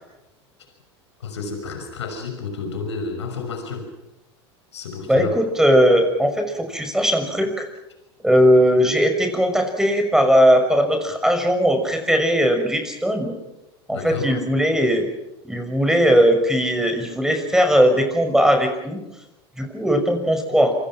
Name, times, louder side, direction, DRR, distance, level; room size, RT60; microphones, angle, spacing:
voice 1, 1.2-3.9 4.7-5.3 8.8-8.9 13.9-14.3, left 4 dB, 90° left, 5 dB, 5.7 m, -30 dB
voice 2, 5.1-7.7 8.2-13.3 13.9-15.1 15.4-19.0 19.6-20.7, equal, 5° right, 5 dB, 6.0 m, -18 dB
27.5 x 25.0 x 6.1 m, 0.95 s
hypercardioid pair, 90°, 14 cm